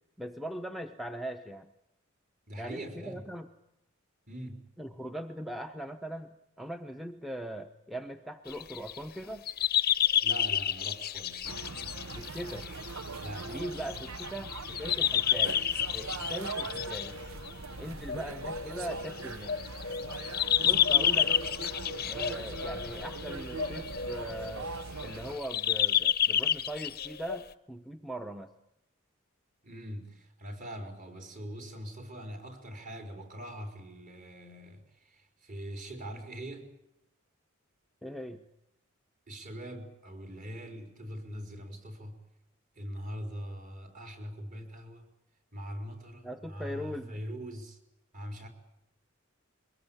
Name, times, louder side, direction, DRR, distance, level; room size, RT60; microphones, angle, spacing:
voice 1, 0.2-1.7 2.6-3.5 4.8-9.4 12.1-12.7 13.5-15.6 15.9-17.2 17.8-19.6 20.6-21.4 22.1-24.7 25.0-28.5 38.0-38.4 46.2-47.2, right 1 dB, ahead, 7 dB, 0.9 m, -40 dB
voice 2, 2.5-3.2 4.3-4.6 10.2-11.5 13.2-13.9 29.6-34.8 35.1-36.7 39.3-42.2 42.8-45.1 45.5-47.8 48.1-48.5, equal, 40° right, 4 dB, 4.5 m, -42 dB
sound 1, 8.5-9.0 9.5-27.4, left 10 dB, 45° left, 0.8 m, -30 dB
sound 2, 11.4-25.4, right 4 dB, 75° right, 0.9 m, -41 dB
23.5 x 20.5 x 8.8 m, 0.85 s
head